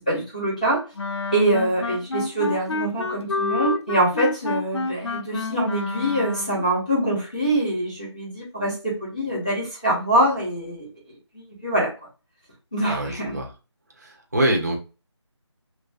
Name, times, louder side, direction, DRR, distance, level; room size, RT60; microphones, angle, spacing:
voice 1, 0.1-0.8 1.3-10.9 11.3-11.9 12.7-13.4, right 1 dB, 15° left, -7 dB, 0.6 m, -24 dB
Wind instrument woodwind instrument, 1.0-6.6, left 4 dB, 65° left, 0.4 m, -29 dB
voice 2, 12.9-13.5 14.0-14.8, right 1 dB, 35° right, 1 dB, 0.7 m, -24 dB
3.2 x 2.5 x 2.4 m, 0.31 s
figure-of-eight pair, 180°, 15 cm